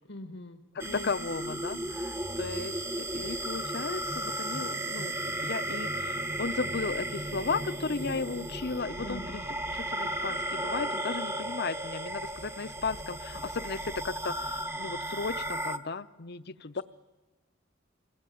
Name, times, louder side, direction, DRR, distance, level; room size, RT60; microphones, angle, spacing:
voice 1, 0.1-0.6 0.8-1.1 9.0-9.4, left 1 dB, 80° left, 7 dB, 1.5 m, -42 dB
voice 2, 0.7-16.8, left 4 dB, 55° left, 14 dB, 0.8 m, -35 dB
sound 1, 0.8-15.8, right 1 dB, 15° right, 1.0 m, -35 dB
27.5 x 20.5 x 9.3 m, 1.2 s
head